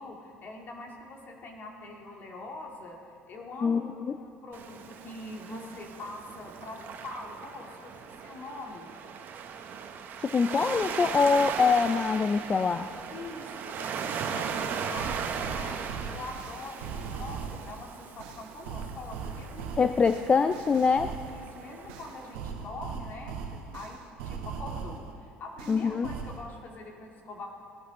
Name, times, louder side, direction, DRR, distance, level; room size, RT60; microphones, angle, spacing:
voice 1, 0.0-3.0 3.3-8.9 13.1-15.8 16.1-19.7 21.3-23.4 23.7-25.0 25.4-27.5, left 2 dB, 45° left, 1 dB, 2.0 m, -43 dB
voice 2, 3.6-4.1 10.2-12.9 19.8-21.2 25.7-26.1, left 5 dB, 25° left, 10 dB, 0.4 m, -24 dB
Waves surf, 4.5-22.4, right 6 dB, 50° right, 1.0 m, -38 dB
sound 1, 14.0-14.1 14.5-17.7 18.2-21.4 21.9-25.1 25.6-26.4, right 6 dB, 85° right, 1.2 m, -39 dB
16.5 x 12.0 x 3.8 m, 2.6 s
supercardioid pair, 95°, 4 cm